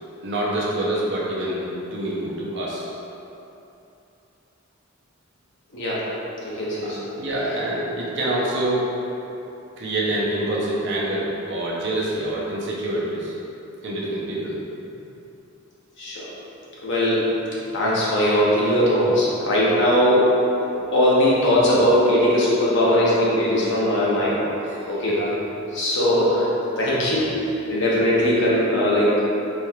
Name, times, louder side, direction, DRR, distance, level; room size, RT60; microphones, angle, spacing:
voice 1, 0.2-1.6 1.9-2.9 6.8-8.9 9.8-13.3 13.8-14.6 24.7-25.3, right 1 dB, 60° right, -5 dB, 0.7 m, -26 dB
voice 2, 6.4-7.0 16.0-16.3 16.8-17.3 17.7-20.3 20.6-24.4 24.9-25.2 25.7-26.4 26.8-27.3 27.7-29.2, equal, 60° left, -7 dB, 0.9 m, -20 dB
4.1 x 3.0 x 2.4 m, 2.9 s
head